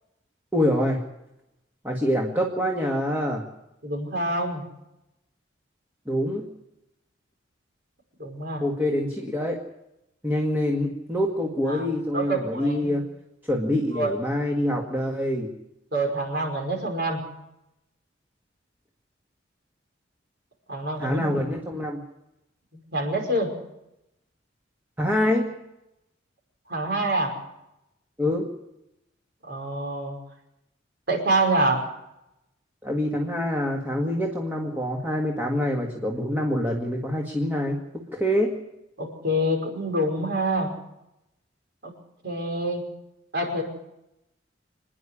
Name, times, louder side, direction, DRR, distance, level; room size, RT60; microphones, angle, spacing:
voice 1, 0.5-1.0 1.8-3.5 6.1-6.5 8.6-9.6 10.2-13.0 13.5-15.5 21.0-22.0 25.0-25.5 28.2-28.5 32.8-37.8 38.1-38.5, left 1 dB, 10° right, 0 dB, 2.0 m, -25 dB
voice 2, 3.8-4.6 8.2-8.6 11.7-11.9 12.1-13.0 13.9-14.1 15.9-17.2 20.7-21.4 22.9-23.5 26.7-27.3 29.4-30.2 31.1-31.8 39.0-40.7 41.8-41.9 42.2-42.8 43.3-43.6, right 1 dB, 55° right, 1 dB, 5.4 m, -26 dB
26.5 x 10.0 x 9.8 m, 0.88 s
head